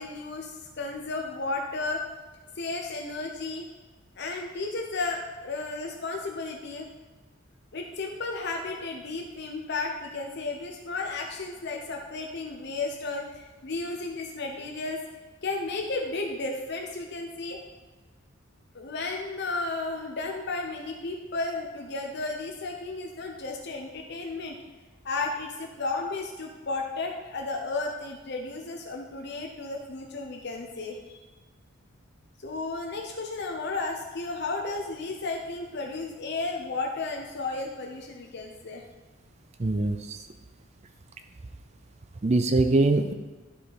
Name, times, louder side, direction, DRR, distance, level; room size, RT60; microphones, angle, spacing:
voice 1, 0.0-2.1 2.6-3.7 4.2-6.9 7.7-15.0 15.4-17.6 18.7-24.6 25.0-31.2 32.4-38.8, left 3 dB, 55° left, 1 dB, 0.9 m, -33 dB
voice 2, 39.6-40.2 42.2-43.1, right 2 dB, 35° right, 7 dB, 0.5 m, -23 dB
12.0 x 4.9 x 4.1 m, 1.2 s
head